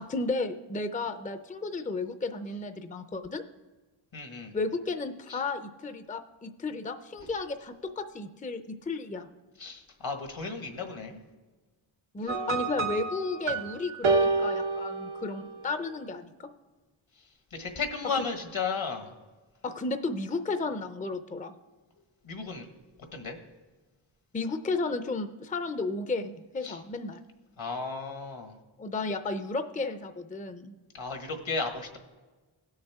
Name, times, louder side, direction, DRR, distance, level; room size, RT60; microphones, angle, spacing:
voice 1, 0.0-3.4 4.5-9.3 12.1-16.5 18.0-18.2 19.6-21.6 24.3-27.2 28.8-30.7, left 3 dB, 15° left, 9 dB, 0.5 m, -33 dB
voice 2, 4.1-4.5 5.3-5.4 9.6-11.2 17.5-19.1 22.2-22.7 23.1-23.4 26.6-26.8 27.6-28.5 30.9-32.0, left 4 dB, 75° left, 5 dB, 1.5 m, -34 dB
sound 1, 12.3-15.7, right 3 dB, 85° right, 1.0 m, -29 dB
17.0 x 6.5 x 3.6 m, 1.2 s
wide cardioid pair, 65°, 48 cm